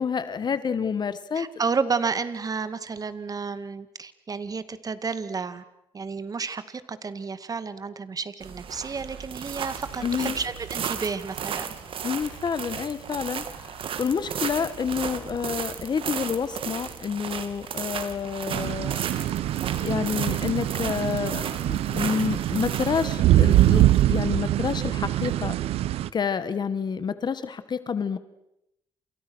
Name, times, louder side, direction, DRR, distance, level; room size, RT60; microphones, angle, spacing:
voice 1, 0.0-1.5 10.0-10.4 12.0-19.0 19.8-25.6 26.1-28.2, left 6 dB, 45° left, 13 dB, 1.7 m, -28 dB
voice 2, 1.3-5.6 5.9-11.7, right 5 dB, 40° right, 12 dB, 2.2 m, -31 dB
sound 1, 8.4-25.3, right 7 dB, 65° right, 3.0 m, -35 dB
sound 2, 18.5-26.1, right 14 dB, 80° right, 0.9 m, -23 dB
29.0 x 28.0 x 6.4 m, 0.83 s
cardioid pair, 85°, 10 cm